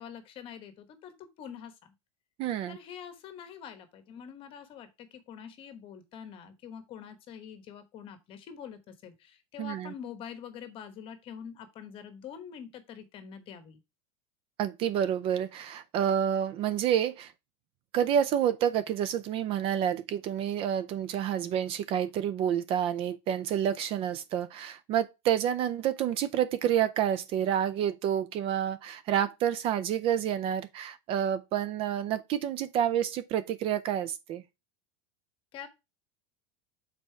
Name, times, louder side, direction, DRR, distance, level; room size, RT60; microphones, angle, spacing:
voice 1, 0.0-1.9 2.7-13.8 35.5-35.7, left 8 dB, 40° left, 1.1 m, -45 dB
voice 2, 2.4-2.8 9.6-9.9 14.6-17.3 17.9-34.4, right 9 dB, 40° right, 0.5 m, -29 dB
5.3 x 4.1 x 4.4 m
supercardioid pair, 140°, 15 cm